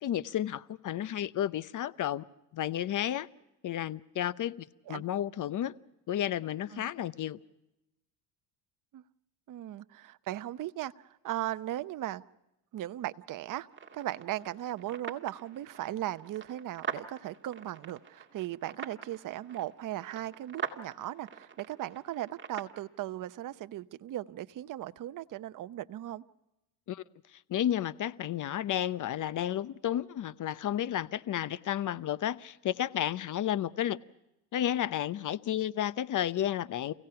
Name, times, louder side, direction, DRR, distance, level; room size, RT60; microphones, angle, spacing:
voice 1, 0.0-2.2 2.5-3.3 3.6-4.5 4.9-5.7 6.1-7.4 26.9-27.0 27.5-34.0 34.5-36.9, left 11 dB, 40° left, 18 dB, 0.8 m, -32 dB
voice 2, 9.5-12.2 12.7-13.7 13.9-26.2, right 13 dB, 40° right, 12 dB, 0.8 m, -37 dB
sound 1, 13.7-22.8, right 6 dB, 25° right, 2.2 m, -44 dB
29.5 x 17.0 x 5.8 m, 0.93 s
supercardioid pair, 95°, 49 cm